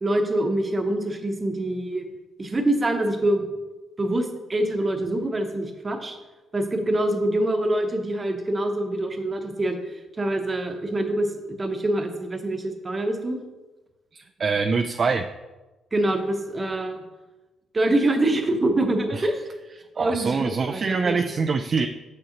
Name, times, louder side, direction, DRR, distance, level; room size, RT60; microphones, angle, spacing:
voice 1, 0.0-2.1 2.4-3.5 4.0-6.2 6.5-11.3 11.6-13.4 15.9-17.0 17.7-19.5 20.0-21.2, right 1 dB, 30° right, 5 dB, 0.9 m, -25 dB
voice 2, 14.1-15.3 19.1-19.3 20.0-21.9, right 4 dB, 45° right, 5 dB, 0.3 m, -24 dB
6.9 x 6.3 x 2.9 m, 1.1 s
cardioid pair, 90°, 0 cm